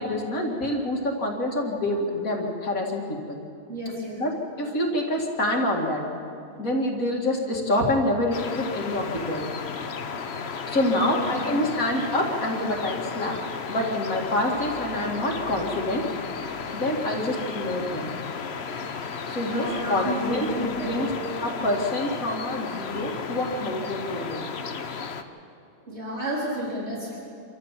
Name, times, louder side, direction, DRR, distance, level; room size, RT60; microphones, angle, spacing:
voice 1, 0.0-3.4 4.2-6.0 6.6-9.4 10.7-13.4 13.7-16.0 16.7-18.1 19.3-24.4, left 1 dB, 75° left, -1 dB, 2.7 m, -27 dB
voice 2, 3.7-4.2 11.0-11.8 19.4-21.0 25.9-27.2, right 1 dB, 50° right, -4 dB, 4.5 m, -31 dB
sound 1, 8.3-25.2, left 5 dB, 50° left, 1.2 m, -34 dB
26.5 x 14.0 x 7.4 m, 2.6 s
omnidirectional pair, 1.5 m